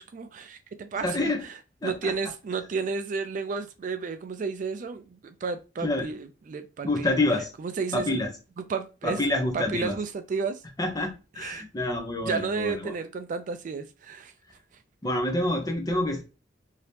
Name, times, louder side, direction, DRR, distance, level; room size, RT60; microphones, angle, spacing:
voice 1, 0.0-1.3 1.8-6.2 6.5-7.1 7.6-8.2 8.7-9.2 9.5-10.6 11.4-11.6 12.2-14.3, right 5 dB, 45° right, 0.3 m, -32 dB
voice 2, 1.0-1.4 1.8-2.1 5.8-6.2 6.8-7.5 7.9-8.3 9.0-10.0 10.8-12.9 15.0-16.3, left 2 dB, 20° left, 0.7 m, -27 dB
2.8 x 2.8 x 3.3 m
head